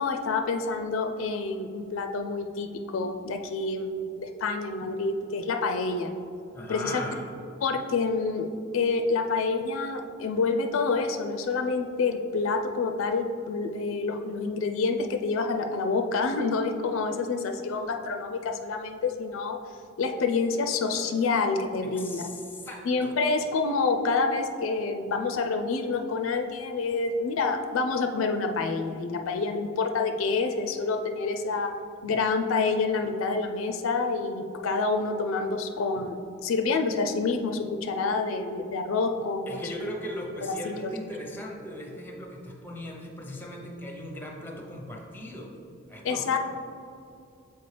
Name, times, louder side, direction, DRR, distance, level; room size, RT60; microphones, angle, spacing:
voice 1, 0.0-6.1 6.7-6.9 7.6-8.5 8.7-19.6 20.0-22.2 22.8-31.7 32.0-39.6 40.6-40.9 46.0-46.4, left 4 dB, 75° left, 6 dB, 0.4 m, -28 dB
voice 2, 6.5-7.3 21.8-23.2 39.5-45.5 45.9-46.4, left 1 dB, 10° left, 0 dB, 0.7 m, -38 dB
6.9 x 4.5 x 3.3 m, 2.6 s
head